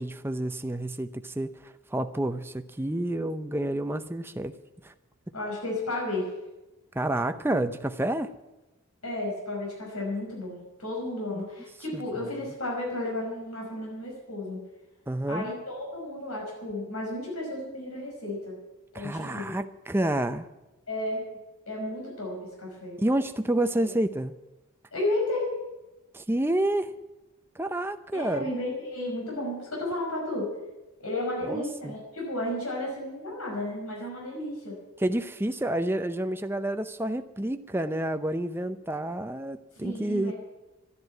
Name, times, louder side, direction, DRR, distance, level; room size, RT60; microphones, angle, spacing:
voice 1, 0.0-4.5 4.8-4.9 6.9-8.3 11.3-11.5 11.9-12.0 15.1-15.4 18.9-20.5 23.0-24.3 26.1-26.9 27.6-28.5 31.4-31.9 35.0-40.3, right 1 dB, 10° right, 9 dB, 0.5 m, -29 dB
voice 2, 5.3-6.3 9.0-14.6 15.3-18.6 18.9-19.5 20.9-21.3 21.7-23.0 24.9-25.6 28.1-30.5 31.0-34.7 39.7-40.3, left 1 dB, 85° left, -2 dB, 5.5 m, -33 dB
12.5 x 11.0 x 9.4 m, 1.0 s
head